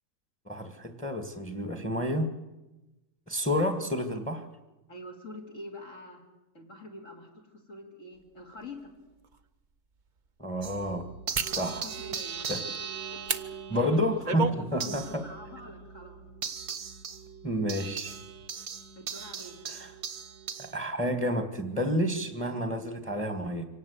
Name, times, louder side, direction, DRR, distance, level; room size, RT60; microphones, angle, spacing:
voice 1, 0.5-2.3 3.3-4.5 10.4-11.1 11.6-11.9 12.5-12.6 13.7-15.2 17.4-18.1 19.6-19.9 20.6-23.7, equal, 5° left, 7 dB, 1.7 m, -30 dB
voice 2, 4.9-6.2 6.5-8.8 11.5-13.2 13.7-14.2 14.7-16.2 19.0-19.6, left 1 dB, 55° left, -1 dB, 4.3 m, -46 dB
sound 1, 8.5-8.6 9.2-9.4 11.3-11.6 13.2-13.4 14.0-14.6 15.0-15.1, right 4 dB, 35° right, 1.0 m, -30 dB
sound 2, 10.6-20.8, right 6 dB, 85° right, 1.9 m, -39 dB
25.5 x 17.5 x 8.4 m, 1.0 s
omnidirectional pair, 1.6 m